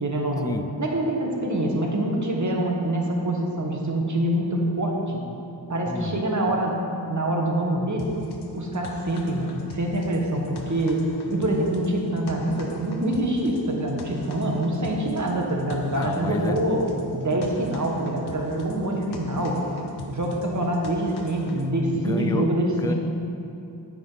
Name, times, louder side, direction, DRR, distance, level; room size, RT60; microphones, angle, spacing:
voice 1, 0.0-0.5 0.8-5.2 5.7-6.7 7.1-8.1 8.5-11.0 11.3-16.8 17.1-19.6 20.1-22.9, right 1 dB, 40° right, 0 dB, 1.3 m, -25 dB
voice 2, 5.9-6.3 15.9-16.6 22.0-22.9, left 3 dB, 10° left, 8 dB, 0.3 m, -31 dB
sound 1, 8.0-21.7, left 4 dB, 60° left, 0.8 m, -43 dB
8.4 x 5.0 x 4.0 m, 2.7 s
cardioid pair, 50°, 45 cm